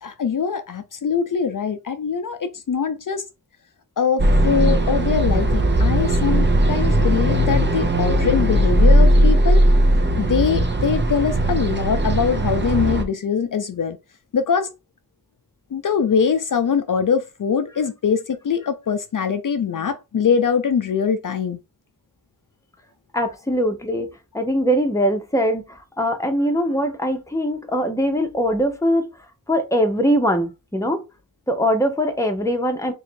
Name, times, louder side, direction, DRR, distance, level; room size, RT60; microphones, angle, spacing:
voice 1, 0.0-3.2 4.0-9.6 10.2-14.0 14.3-14.7 15.7-21.6, left 6 dB, 60° left, 0.5 m, -22 dB
sound 1, 4.2-13.0, right 1 dB, 30° right, 0.6 m, -18 dB
voice 2, 23.1-29.1 29.5-31.0 31.5-32.9, equal, 10° left, 0.7 m, -22 dB
3.1 x 2.6 x 4.4 m
wide cardioid pair, 95°, 36 cm